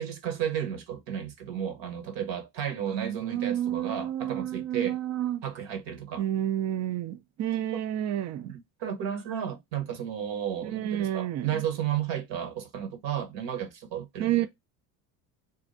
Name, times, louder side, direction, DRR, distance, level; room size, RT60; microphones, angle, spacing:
voice 1, 0.0-5.0 5.4-6.2 8.8-14.5, right 9 dB, 60° right, 1.0 m, -33 dB
voice 2, 2.9-5.4 6.2-8.5 10.6-11.6 14.2-14.5, right 12 dB, 35° right, 0.4 m, -30 dB
2.6 x 2.3 x 4.1 m
hypercardioid pair, 75°, 50 cm